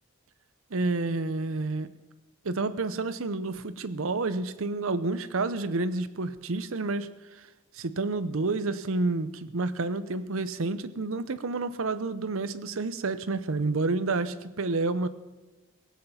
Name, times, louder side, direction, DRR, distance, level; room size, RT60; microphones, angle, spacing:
voice 1, 0.7-1.9 2.4-7.1 7.7-15.1, right 3 dB, 75° right, 13 dB, 0.7 m, -29 dB
18.0 x 8.1 x 7.1 m, 1.2 s
head